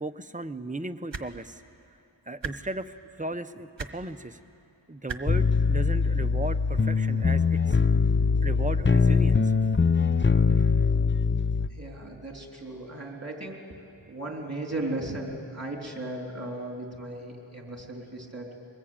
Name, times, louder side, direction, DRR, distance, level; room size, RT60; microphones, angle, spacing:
voice 1, 0.0-1.6 2.3-4.4 4.9-7.8 8.4-9.5, right 2 dB, 15° right, 9 dB, 0.8 m, -36 dB
sound 1, 1.1-1.3 2.4-2.5 3.8-3.9 5.1-5.2 6.4-6.5, right 5 dB, 65° right, 1.2 m, -34 dB
sound 2, 5.3-11.7, left 5 dB, 25° left, 0.6 m, -22 dB
voice 2, 11.7-13.8 14.1-18.5, right 2 dB, 30° right, 0 dB, 3.8 m, -36 dB
23.5 x 20.5 x 8.9 m, 2.6 s
wide cardioid pair, 50°, 47 cm